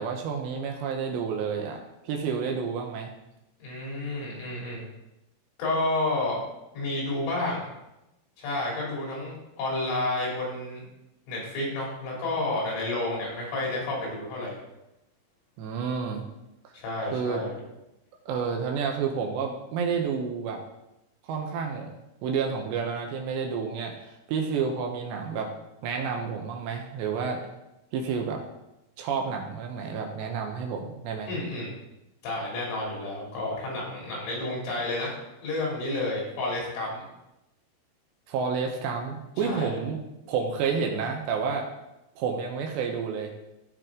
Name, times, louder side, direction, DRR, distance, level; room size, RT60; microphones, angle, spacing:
voice 1, 0.0-3.1 15.6-16.2 17.1-17.4 18.3-20.6 21.3-21.9 22.2-25.5 25.8-27.4 27.9-28.4 29.0-31.3 38.3-40.0 40.3-41.7 42.2-43.3, right 6 dB, 75° right, 2 dB, 2.9 m, -30 dB
voice 2, 3.6-4.8 5.6-6.4 6.7-7.6 8.4-10.8 11.3-14.6 16.7-17.6 31.3-31.7 32.2-35.2 35.4-37.1 39.4-39.7, left 2 dB, 85° left, -3 dB, 5.5 m, -30 dB
15.0 x 5.4 x 3.7 m, 0.92 s
omnidirectional pair, 5.5 m